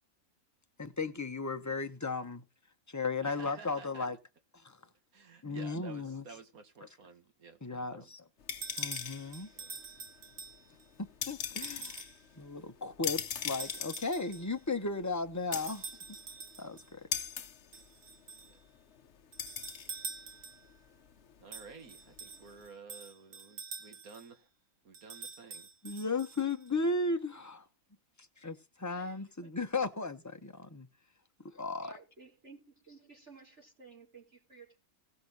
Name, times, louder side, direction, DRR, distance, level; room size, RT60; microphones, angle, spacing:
voice 1, 0.8-2.4 2.9-4.2 4.6-4.8 5.4-6.2 7.6-8.2 8.8-9.5 11.0-12.0 12.4-15.9 16.6-17.0 25.8-27.7 28.4-30.9 31.5-31.9, left 3 dB, 15° left, 0.8 m, -35 dB
voice 2, 3.2-4.1 5.1-8.1 9.5-9.7 18.4-18.6 21.4-24.5 24.8-25.7, right 5 dB, 85° right, 2.0 m, -52 dB
sound 1, 8.4-22.7, left 8 dB, 55° left, 1.1 m, -42 dB
sound 2, 8.6-10.9 11.6-12.2 13.6-14.6 15.5-16.9 17.7-18.6 19.3-20.8 21.5-24.3 24.9-26.7, right 5 dB, 70° right, 1.5 m, -46 dB
voice 3, 31.9-34.8, right 4 dB, 50° right, 4.7 m, -55 dB
17.5 x 6.1 x 4.0 m
omnidirectional pair, 1.5 m